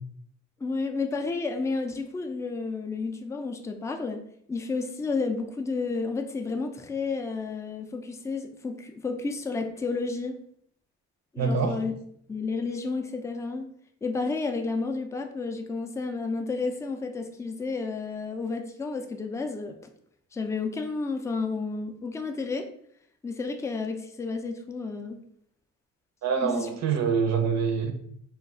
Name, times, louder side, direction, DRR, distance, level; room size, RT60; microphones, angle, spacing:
voice 1, 0.6-4.2 4.5-10.3 11.3-11.9 12.3-13.7 14.0-19.8 20.3-22.7 23.2-25.2 26.4-26.7, left 4 dB, 10° left, 5 dB, 0.3 m, -31 dB
voice 2, 11.4-11.8 26.2-27.9, right 6 dB, 60° right, 6 dB, 0.6 m, -25 dB
2.3 x 2.3 x 3.6 m, 0.66 s
cardioid pair, 90°, 30 cm